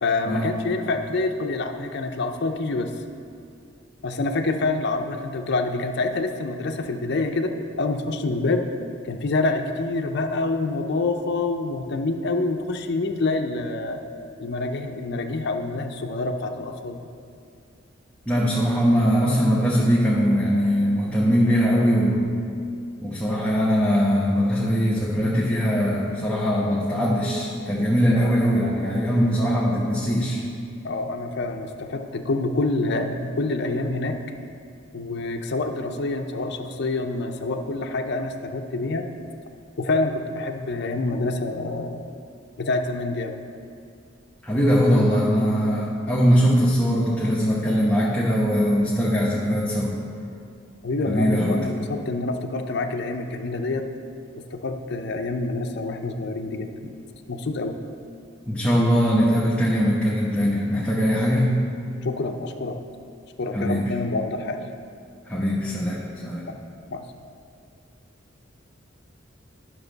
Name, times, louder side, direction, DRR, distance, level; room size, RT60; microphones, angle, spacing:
voice 1, 0.0-2.9 4.0-8.6 9.0-14.0 14.4-17.1 30.8-34.2 34.9-39.1 39.8-42.0 42.6-43.4 50.8-53.8 54.5-56.9 57.3-57.7 62.0-62.8 63.4-64.7 66.9-67.0, left 2 dB, 60° left, 4 dB, 0.6 m, -27 dB
voice 2, 18.3-22.4 23.0-30.4 44.4-49.9 51.1-51.6 58.5-61.6 63.5-63.9 65.3-66.5, equal, 5° left, -7 dB, 0.9 m, -21 dB
11.0 x 6.1 x 4.0 m, 2.4 s
head